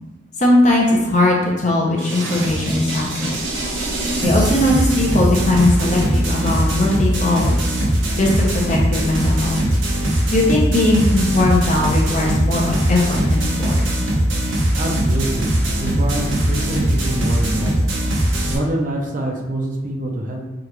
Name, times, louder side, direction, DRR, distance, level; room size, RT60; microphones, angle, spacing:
voice 1, 0.4-3.4 4.2-7.6 8.2-9.6 10.3-13.9, left 2 dB, 40° left, -2 dB, 0.7 m, -19 dB
sound 1, 2.0-18.6, right 1 dB, 90° right, 1.0 m, -20 dB
voice 2, 14.7-17.9 18.5-20.4, right 1 dB, 40° right, -1 dB, 0.6 m, -25 dB
4.9 x 2.5 x 3.0 m, 1.1 s
head